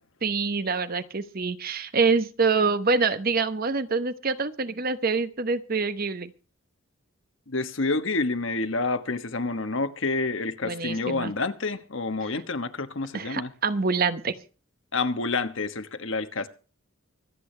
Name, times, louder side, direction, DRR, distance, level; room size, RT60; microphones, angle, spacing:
voice 1, 0.2-6.3 10.6-11.3 13.1-14.3, right 4 dB, 45° right, 0.9 m, -26 dB
voice 2, 7.5-13.5 14.9-16.5, left 3 dB, 65° left, 1.2 m, -28 dB
25.0 x 8.5 x 3.3 m
head